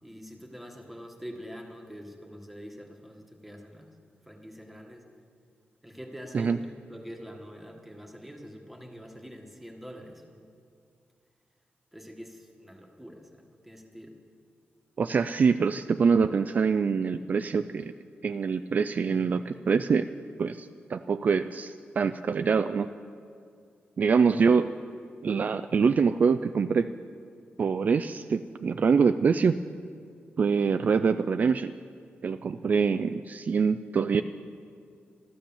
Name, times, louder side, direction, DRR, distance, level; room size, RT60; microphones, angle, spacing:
voice 1, 0.0-4.0 4.3-5.1 5.8-10.5 11.9-14.2, equal, ahead, 2 dB, 1.4 m, -45 dB
voice 2, 15.0-17.9 18.2-20.1 20.4-22.9 24.0-24.7 25.2-26.9 27.6-29.6 30.4-31.7 32.2-34.2, right 5 dB, 45° right, 10 dB, 0.3 m, -25 dB
13.0 x 13.0 x 7.1 m, 2.3 s
wide cardioid pair, 145°, 4 cm